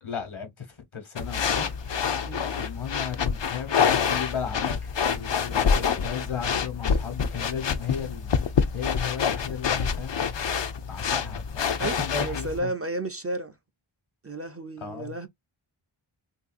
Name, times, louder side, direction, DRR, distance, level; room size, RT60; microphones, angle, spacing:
voice 1, 0.0-1.7 2.5-8.3 8.7-10.6 10.9-12.7 14.8-15.2, left 7 dB, 80° left, 1.2 m, -35 dB
sound 1, 1.2-12.6, left 6 dB, 65° left, 0.6 m, -27 dB
voice 2, 11.8-13.6 14.2-15.3, right 2 dB, 30° right, 0.5 m, -32 dB
3.3 x 2.6 x 2.4 m
wide cardioid pair, 45°, 49 cm